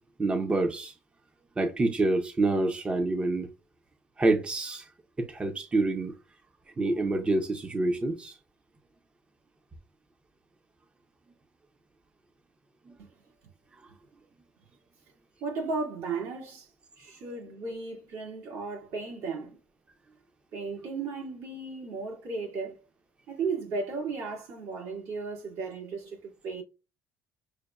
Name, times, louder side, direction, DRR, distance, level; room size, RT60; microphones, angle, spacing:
voice 1, 0.2-0.9 1.6-3.5 4.2-4.9 5.2-6.1 6.8-8.3 12.9-13.0, right 2 dB, 20° right, 0.6 m, -27 dB
voice 2, 15.4-16.7 17.0-19.6 20.5-22.8 23.3-26.6, right 4 dB, 75° right, 2.1 m, -35 dB
6.4 x 2.2 x 2.3 m
cardioid pair, 100°, 5 cm